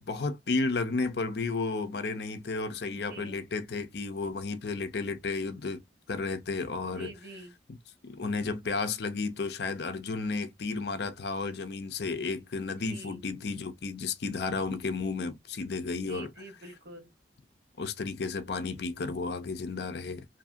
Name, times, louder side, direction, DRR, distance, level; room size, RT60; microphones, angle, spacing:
voice 1, 0.0-5.8 6.1-7.1 7.7-7.8 8.0-16.4 17.8-20.3, left 4 dB, 65° left, 0.6 m, -33 dB
voice 2, 2.9-3.4 6.8-7.5 12.6-13.2 15.9-17.1, right 2 dB, 65° right, 1.1 m, -47 dB
2.8 x 2.6 x 2.5 m
head